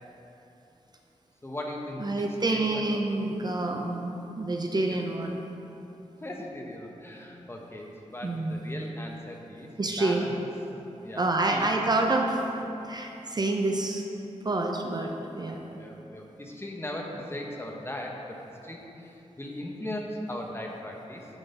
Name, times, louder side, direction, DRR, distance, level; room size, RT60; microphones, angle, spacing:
voice 1, 1.4-2.2 2.5-2.9 6.2-9.7 10.0-10.4 11.0-11.7 15.4-18.4 18.6-21.3, left 1 dB, 20° left, 0 dB, 0.9 m, -38 dB
voice 2, 2.0-5.4 8.2-8.6 9.8-10.2 11.2-12.4 12.8-14.0 14.4-15.6, right 2 dB, 35° right, 2 dB, 0.5 m, -28 dB
9.0 x 3.9 x 5.2 m, 3.0 s
wide cardioid pair, 105°, 12 cm